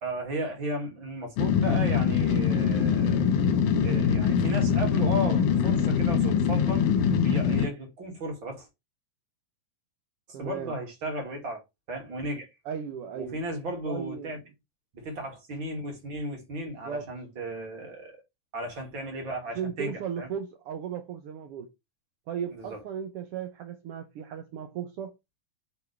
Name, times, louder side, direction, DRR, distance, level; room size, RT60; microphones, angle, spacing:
voice 1, 0.0-3.3 3.8-6.9 7.2-8.7 10.3-11.6 11.9-12.5 13.2-14.4 14.9-18.2 18.5-20.3 22.5-22.8, right 1 dB, 40° right, 2.9 m, -35 dB
sound 1, 1.4-7.7, left 7 dB, 80° left, 2.7 m, -23 dB
voice 2, 10.3-10.7 12.6-13.4 13.9-14.3 16.8-17.1 19.5-21.7 22.3-25.1, right 8 dB, 75° right, 1.3 m, -36 dB
8.6 x 5.3 x 3.4 m
omnidirectional pair, 3.7 m